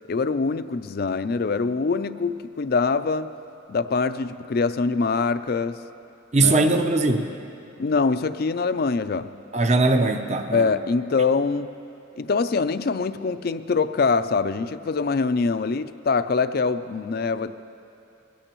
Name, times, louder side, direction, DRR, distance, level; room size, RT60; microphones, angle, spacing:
voice 1, 0.1-3.3 3.7-5.8 6.4-6.7 7.8-9.3 10.5-11.8 12.2-17.5, left 4 dB, 45° left, 12 dB, 0.4 m, -24 dB
voice 2, 6.3-7.3 9.5-10.8, right 2 dB, 35° right, 7 dB, 0.6 m, -20 dB
21.5 x 16.5 x 3.0 m, 2.8 s
head